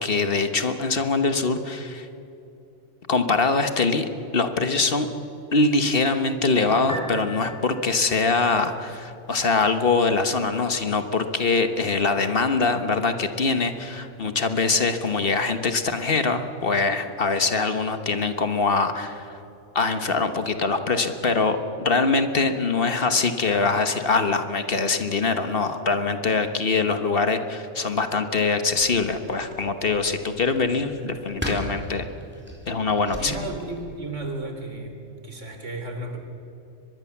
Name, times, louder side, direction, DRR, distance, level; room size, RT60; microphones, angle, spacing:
voice 1, 0.0-2.1 3.1-4.1 4.3-5.1 5.5-19.4 19.7-32.1 32.7-33.4, left 4 dB, 50° left, 8 dB, 1.4 m, -23 dB
Piano, 6.7-19.8, right 1 dB, 15° left, 4.8 m, -46 dB
sound 1, 28.7-34.1, equal, 10° right, 4.1 m, -38 dB
voice 2, 33.2-35.0 35.2-36.2, right 2 dB, 75° right, 4 dB, 3.5 m, -33 dB
23.5 x 21.0 x 7.2 m, 2.9 s
omnidirectional pair, 1.3 m